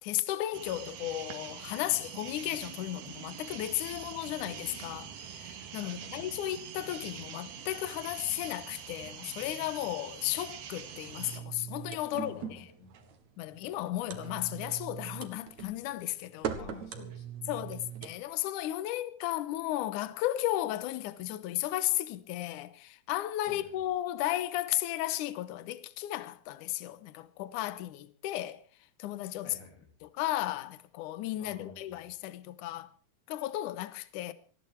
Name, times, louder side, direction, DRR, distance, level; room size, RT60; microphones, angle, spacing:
voice 1, 0.0-12.7 13.4-16.6 17.5-28.6 29.0-29.6 30.0-32.9 33.3-34.3, left 14 dB, 70° left, 2.2 m, -34 dB
sound 1, 0.5-11.4, right 8 dB, 85° right, 3.6 m, -44 dB
voice 2, 5.8-6.5 12.1-13.1 16.5-17.8 23.5-23.7 29.4-29.9 31.4-32.0, left 4 dB, 90° left, 4.7 m, -51 dB
sound 2, 11.2-18.2, right 8 dB, 60° right, 2.6 m, -41 dB
20.0 x 14.5 x 4.6 m
omnidirectional pair, 4.3 m